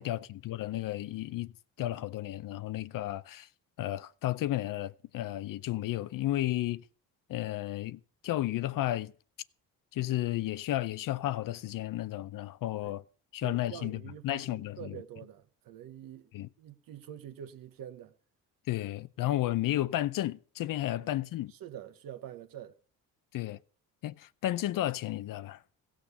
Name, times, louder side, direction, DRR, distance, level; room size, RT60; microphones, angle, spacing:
voice 1, 0.0-1.5 1.8-3.5 3.8-6.8 7.3-9.1 9.9-13.0 13.3-15.0 16.3-16.5 18.7-21.5 23.3-23.6 24.0-25.6, left 14 dB, 65° left, 0.7 m, -33 dB
voice 2, 13.4-16.3 16.6-18.1 21.0-21.1 21.5-22.8, right 10 dB, 70° right, 1.2 m, -46 dB
16.0 x 6.5 x 6.7 m
cardioid pair, 105°, 35 cm